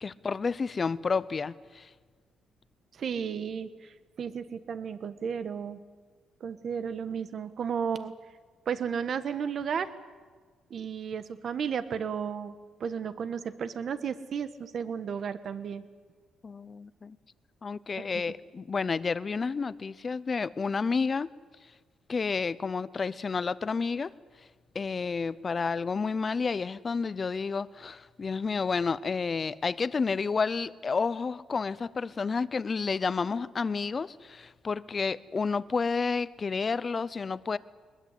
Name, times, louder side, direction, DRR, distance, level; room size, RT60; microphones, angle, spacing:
voice 1, 0.0-1.9 16.4-17.2 17.6-21.3 22.1-24.1 24.7-37.6, left 5 dB, 35° left, 17 dB, 0.7 m, -30 dB
voice 2, 2.9-5.8 6.4-8.1 8.7-9.9 10.7-12.5 12.8-15.8 18.0-18.2, right 7 dB, 55° right, 11 dB, 1.4 m, -33 dB
21.0 x 21.0 x 8.3 m, 1.5 s
cardioid pair, 90°, 0 cm